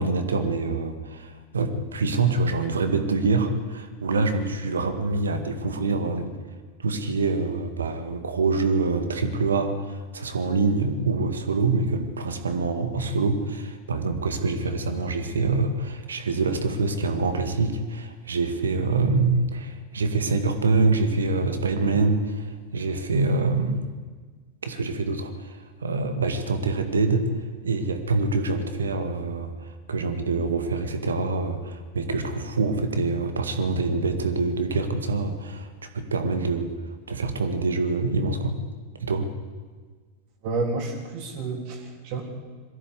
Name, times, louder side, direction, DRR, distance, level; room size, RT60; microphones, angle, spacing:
voice 1, 0.0-6.3 6.8-23.9 24.6-27.3 27.6-36.7 37.1-38.6 39.0-39.3, right 3 dB, 70° right, 8 dB, 1.9 m, -25 dB
voice 2, 40.4-42.2, right 3 dB, 45° right, 2 dB, 3.4 m, -30 dB
22.0 x 15.0 x 8.2 m, 1.5 s
figure-of-eight pair, 90°, 0 cm